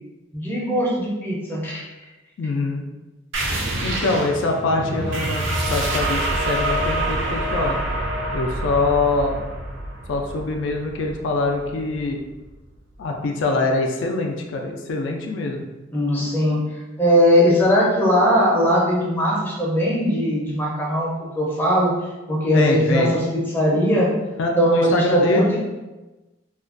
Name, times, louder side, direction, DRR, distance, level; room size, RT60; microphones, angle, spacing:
voice 1, 0.3-1.9 15.9-16.6 17.0-21.9 22.3-24.1 24.6-25.6, equal, 10° left, -5 dB, 0.5 m, -19 dB
voice 2, 2.4-2.8 3.8-7.8 8.3-9.4 10.1-12.2 13.0-15.7 22.5-23.1 24.4-25.5, left 3 dB, 70° left, 2 dB, 0.3 m, -24 dB
sound 1, 3.3-12.6, right 1 dB, 75° right, 0.4 m, -26 dB
2.4 x 2.2 x 2.4 m, 1.1 s
head